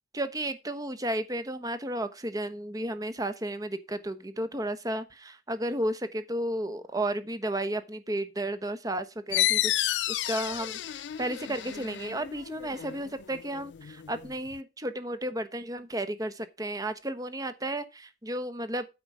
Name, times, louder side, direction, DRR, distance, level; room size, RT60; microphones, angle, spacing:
voice 1, 0.1-18.9, right 1 dB, 20° right, 1.1 m, -33 dB
sound 1, 9.3-14.6, left 14 dB, 75° left, 0.4 m, -31 dB
9.3 x 4.9 x 6.2 m
head